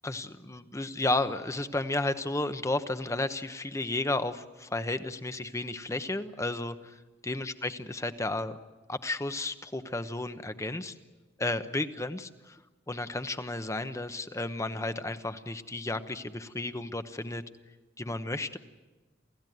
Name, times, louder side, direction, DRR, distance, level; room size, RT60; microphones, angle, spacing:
voice 1, 0.0-8.6 8.9-10.9 11.4-12.6 12.9-17.4 18.0-18.6, left 2 dB, 15° left, 10 dB, 1.0 m, -33 dB
29.0 x 15.5 x 9.3 m, 1.2 s
head